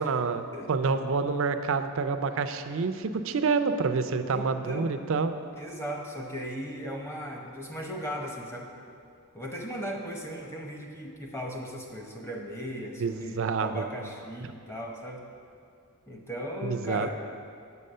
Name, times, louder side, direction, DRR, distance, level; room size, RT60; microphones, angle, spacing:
voice 1, 0.0-5.3 13.0-13.8 16.6-17.1, right 4 dB, 60° right, 10 dB, 0.4 m, -28 dB
voice 2, 0.5-1.0 4.3-4.9 5.5-8.8 9.3-15.3 16.1-17.1, equal, 10° left, 0 dB, 0.8 m, -37 dB
8.2 x 6.5 x 5.5 m, 2.4 s
head